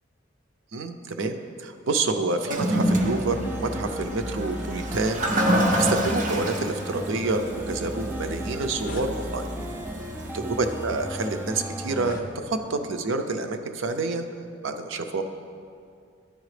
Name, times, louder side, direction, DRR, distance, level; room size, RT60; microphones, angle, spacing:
voice 1, 0.7-5.2 5.8-9.5 10.3-14.3 14.6-15.2, right 3 dB, 85° right, 7 dB, 0.5 m, -28 dB
Toilet flush, 2.4-11.6, equal, 40° right, 0.6 m, -28 dB
sound 1, 2.9-12.2, equal, 10° right, 0.3 m, -35 dB
sound 2, 8.4-9.1 10.0-10.2 10.9-11.0 11.9-12.8, left 2 dB, 45° left, 0.5 m, -43 dB
11.5 x 4.9 x 3.2 m, 2.3 s
head